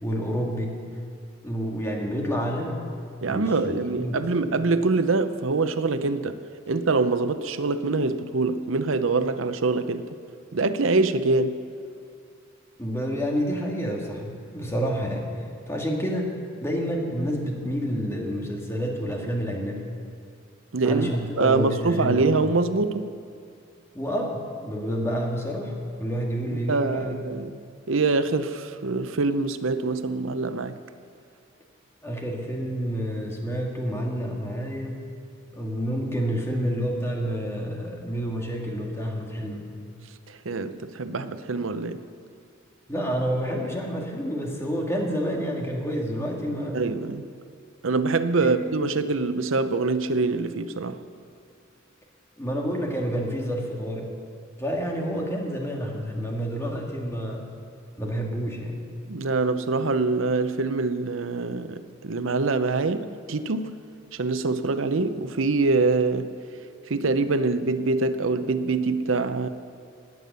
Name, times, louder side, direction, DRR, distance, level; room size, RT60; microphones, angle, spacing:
voice 1, 0.0-0.8 1.4-2.9 3.3-4.3 12.8-15.3 15.7-16.3 16.6-19.8 20.8-22.3 23.9-25.7 26.0-27.2 32.0-35.0 35.5-39.7 42.9-46.8 48.4-48.5 52.4-54.1 54.6-57.6 58.0-58.7, equal, 15° left, 2.1 m, -29 dB
voice 2, 3.2-6.4 6.7-10.1 10.5-11.6 20.7-21.1 21.4-23.1 26.7-27.5 27.9-30.8 40.3-42.0 46.7-47.2 47.8-51.0 59.1-63.8 64.1-66.3 66.9-69.5, right 3 dB, 75° right, 0.7 m, -24 dB
17.5 x 9.4 x 6.8 m
head